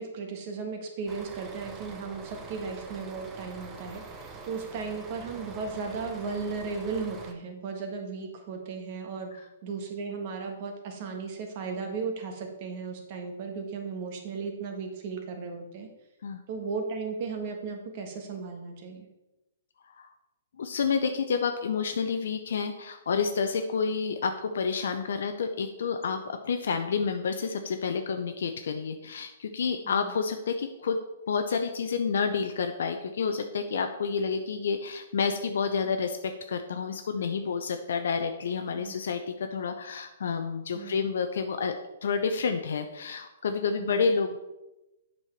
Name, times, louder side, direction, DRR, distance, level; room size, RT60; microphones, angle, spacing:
voice 1, 0.0-9.3 9.6-15.9 16.5-19.1 29.8-30.1 38.7-38.9 40.7-41.0 43.8-44.0, right 4 dB, 45° right, 4 dB, 1.5 m, -36 dB
sound 1, 1.1-7.3, right 4 dB, 20° right, 0.9 m, -44 dB
voice 2, 20.6-31.0 31.3-41.8 42.0-44.4, left 5 dB, 65° left, 7 dB, 0.6 m, -29 dB
8.0 x 5.6 x 4.5 m, 0.99 s
figure-of-eight pair, 120°, 0 cm